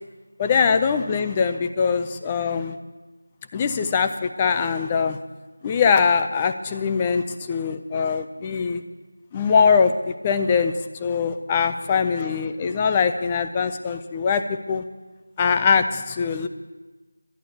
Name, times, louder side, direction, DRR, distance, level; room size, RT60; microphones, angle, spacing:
voice 1, 0.4-2.8 3.5-5.2 5.6-8.8 9.3-10.7 11.0-14.8 15.4-16.5, left 6 dB, 10° left, 8 dB, 0.3 m, -22 dB
11.0 x 10.5 x 6.9 m, 1.2 s
figure-of-eight pair, 180°, 0 cm